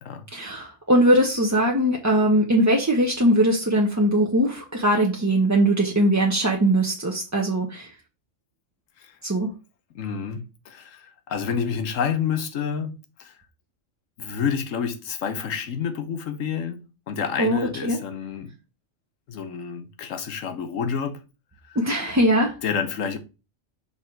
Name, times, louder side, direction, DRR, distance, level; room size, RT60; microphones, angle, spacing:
voice 1, 0.3-7.9 9.2-9.5 17.4-18.0 21.8-22.6, right 1 dB, 15° right, 0.7 m, -21 dB
voice 2, 9.9-13.3 14.2-18.5 19.3-21.2 21.6-21.8 22.6-23.2, left 7 dB, 85° left, 1.3 m, -29 dB
5.8 x 3.6 x 4.5 m
omnidirectional pair, 1.3 m